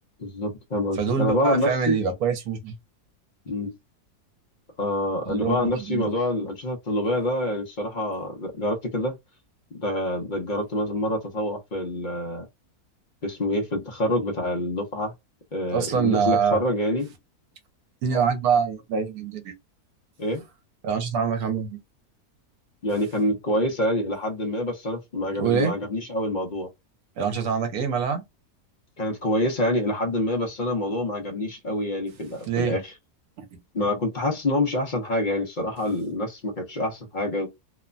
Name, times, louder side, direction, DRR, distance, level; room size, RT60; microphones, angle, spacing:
voice 1, 0.2-2.0 3.5-3.7 4.8-9.2 9.7-12.5 13.2-15.1 15.5-17.1 20.2-20.4 22.8-26.7 29.0-32.9 33.7-37.5, left 1 dB, 50° left, 0.6 m, -26 dB
voice 2, 1.0-2.7 5.3-6.1 15.7-16.6 18.0-19.5 20.8-21.8 25.4-25.7 27.2-28.2 32.5-32.7 33.4-33.6, right 6 dB, 70° right, 1.2 m, -25 dB
2.9 x 2.1 x 2.4 m
omnidirectional pair, 1.7 m